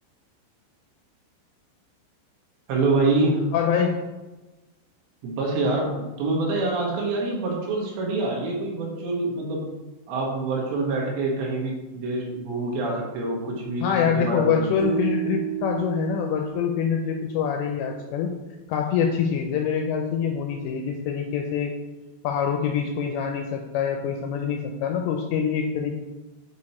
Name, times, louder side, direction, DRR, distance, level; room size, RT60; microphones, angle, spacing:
voice 1, 2.7-3.4 5.2-9.7 10.1-13.9 14.1-14.7, right 2 dB, 70° right, -2 dB, 3.5 m, -26 dB
voice 2, 3.5-4.0 13.8-18.3 18.7-21.7 22.2-26.0, left 7 dB, 85° left, 3 dB, 2.6 m, -25 dB
sound 1, 14.8-18.0, right 9 dB, 65° left, 1.2 m, -32 dB
8.4 x 4.7 x 4.2 m, 1.1 s
omnidirectional pair, 5.6 m